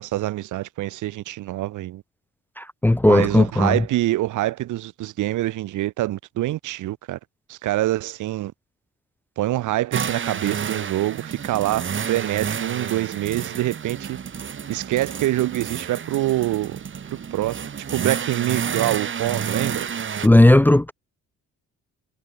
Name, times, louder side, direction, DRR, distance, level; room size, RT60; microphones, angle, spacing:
voice 1, 0.0-2.0 3.0-7.2 7.5-8.5 9.4-14.2 14.7-16.8 17.3-19.9, right 15 dB, 80° right, 1.0 m, -25 dB
voice 2, 2.6-3.8 20.2-20.9, left 1 dB, 5° left, 0.4 m, -15 dB
sound 1, 9.9-20.3, right 7 dB, 40° right, 1.6 m, -30 dB
cardioid pair, 90°, 30 cm